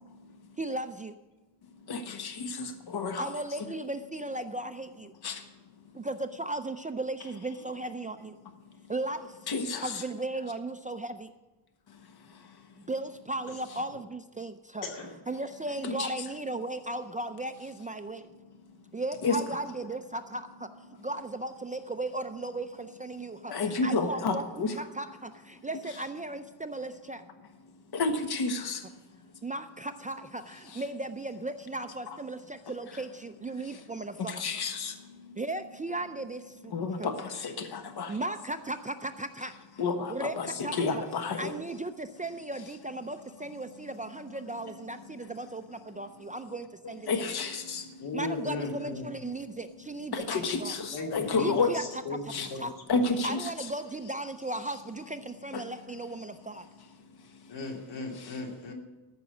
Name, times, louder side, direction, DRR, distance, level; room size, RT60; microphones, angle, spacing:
voice 1, 0.6-1.2 3.2-5.4 5.9-8.4 8.9-9.4 9.8-11.3 12.9-14.8 15.3-18.3 18.9-20.7 21.0-27.2 29.4-34.4 35.4-36.7 37.0-37.1 38.1-39.5 40.1-41.0 41.4-47.1 48.1-50.7 51.4-51.8 52.4-52.7 53.2-56.7, right 2 dB, 20° right, 9 dB, 0.4 m, -36 dB
voice 2, 1.9-3.3 3.6-3.7 5.2-5.5 9.5-10.0 11.9-12.0 12.3-12.6 15.8-16.1 19.2-19.4 23.5-24.8 27.9-28.9 30.7-30.8 34.2-35.4 36.7-38.2 39.8-41.5 46.8-48.0 50.1-51.7 52.3-52.5 52.9-53.5 55.5-55.7 57.3-57.4 58.2-58.4, left 4 dB, 55° left, 7 dB, 1.4 m, -31 dB
voice 3, 14.8-15.2 48.0-49.1 50.9-53.1 57.5-58.7, left 3 dB, 70° left, 2 dB, 2.6 m, -37 dB
14.0 x 6.0 x 8.2 m, 1.1 s
cardioid pair, 120°, 45 cm